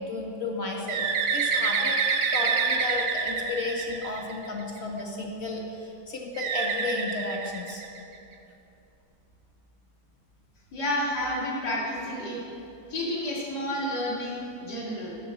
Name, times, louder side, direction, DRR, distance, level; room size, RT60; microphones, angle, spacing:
voice 1, 0.0-7.8, left 2 dB, 45° left, 0 dB, 1.1 m, -33 dB
Bird, 0.9-4.6 6.4-8.2, right 5 dB, 65° right, 0.9 m, -27 dB
voice 2, 10.7-12.4 12.9-15.2, left 1 dB, 60° left, -5 dB, 2.5 m, -30 dB
7.7 x 6.8 x 6.8 m, 2.7 s
omnidirectional pair, 2.0 m